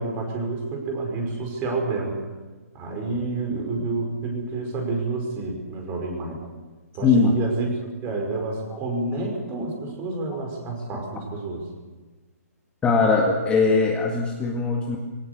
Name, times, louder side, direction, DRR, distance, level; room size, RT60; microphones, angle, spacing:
voice 1, 0.0-2.2 2.7-6.4 6.9-11.7, right 3 dB, 25° right, 2 dB, 5.4 m, -29 dB
voice 2, 7.0-7.4 12.8-15.0, left 4 dB, 10° left, 0 dB, 2.0 m, -20 dB
22.0 x 18.0 x 6.9 m, 1.3 s
hypercardioid pair, 145°, 9 cm